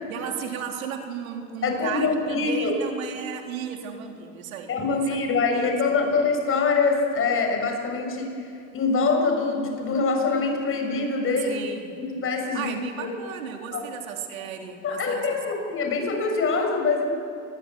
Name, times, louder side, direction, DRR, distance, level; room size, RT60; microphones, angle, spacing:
voice 1, 0.1-5.2 5.6-6.1 11.4-12.0 12.5-15.3, right 8 dB, 80° right, 3 dB, 3.7 m, -35 dB
voice 2, 1.6-2.7 4.7-8.3 8.7-11.5 12.0-12.7 13.0-13.1 13.7-13.8 14.8-17.0, left 4 dB, 30° left, 3 dB, 6.8 m, -24 dB
28.0 x 21.0 x 9.8 m, 2.5 s
supercardioid pair, 115°, 41 cm